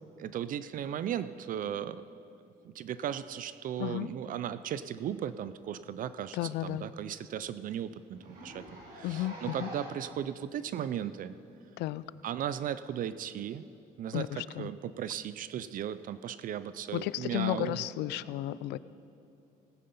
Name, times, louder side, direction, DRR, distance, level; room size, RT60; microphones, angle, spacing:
voice 1, 0.2-2.0 2.6-8.7 8.9-11.4 12.2-13.6 14.0-17.8, right 10 dB, 55° right, 14 dB, 0.4 m, -36 dB
voice 2, 3.8-4.1 6.3-6.8 9.0-9.7 11.8-12.0 14.1-14.7 16.9-18.8, left 15 dB, 80° left, 18 dB, 0.4 m, -33 dB
Zipper (clothing), 5.6-5.7 6.0-6.1 6.5-6.6 6.9-7.0 7.3-7.4 8.1-10.1 10.8-10.9 11.9-12.0, equal, 80° right, 3.7 m, -46 dB
18.0 x 9.4 x 5.4 m, 2.7 s
cardioid pair, 110°, 17 cm